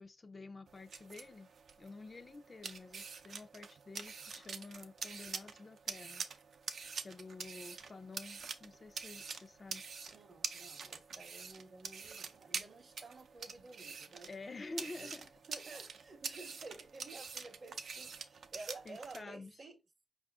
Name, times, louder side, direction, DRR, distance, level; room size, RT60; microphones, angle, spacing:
voice 1, 0.0-1.5 1.8-6.3 7.0-9.9 14.3-15.3 18.9-19.5, left 3 dB, 30° left, 0.4 m, -50 dB
sound 1, 0.7-19.2, right 5 dB, 70° right, 0.5 m, -46 dB
voice 2, 10.1-14.3 14.8-15.1 15.5-19.8, right 3 dB, 40° right, 0.7 m, -52 dB
5.2 x 2.5 x 3.4 m
wide cardioid pair, 125°, 0 cm